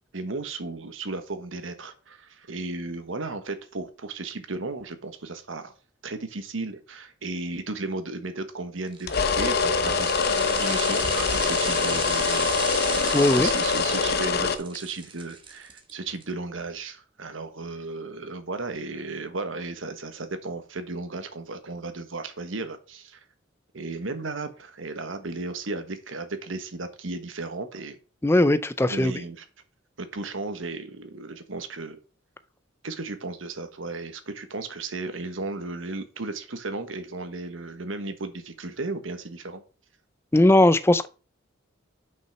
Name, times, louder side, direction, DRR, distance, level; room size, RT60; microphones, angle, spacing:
voice 1, 0.1-5.7 6.0-12.5 12.8-23.2 23.7-28.0 28.9-29.4 30.0-32.0 32.8-39.6, right 3 dB, 80° right, 1.3 m, -35 dB
sound 1, 8.9-16.2 16.6-16.7, right 5 dB, 25° right, 1.2 m, -36 dB
sound 2, 9.1-14.6, left 5 dB, 55° left, 0.9 m, -24 dB
voice 2, 13.1-13.5 28.2-29.1 40.3-41.1, left 1 dB, 15° left, 0.4 m, -19 dB
6.2 x 5.6 x 5.8 m
head